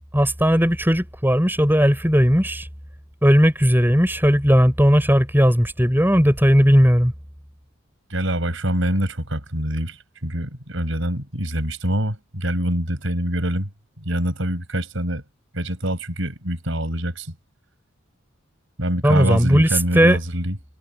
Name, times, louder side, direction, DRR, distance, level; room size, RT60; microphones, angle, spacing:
voice 1, 0.1-2.7 3.2-7.1 19.0-19.7 19.9-20.2, equal, 10° right, 5.7 m, -17 dB
voice 2, 8.1-13.7 14.0-15.2 15.5-17.3 18.8-20.6, right 1 dB, 65° right, 6.1 m, -25 dB
head